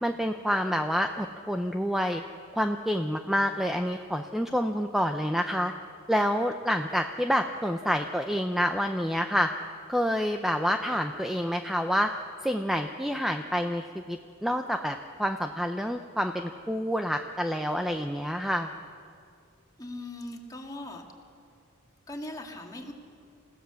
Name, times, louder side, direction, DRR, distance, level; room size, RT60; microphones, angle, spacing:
voice 1, 0.0-2.2 2.5-5.7 6.1-9.5 9.9-12.1 12.4-18.7, equal, ahead, 5 dB, 0.6 m, -28 dB
voice 2, 19.8-21.0 22.1-22.9, left 1 dB, 20° left, 1 dB, 2.3 m, -39 dB
28.5 x 16.0 x 7.1 m, 2.3 s
head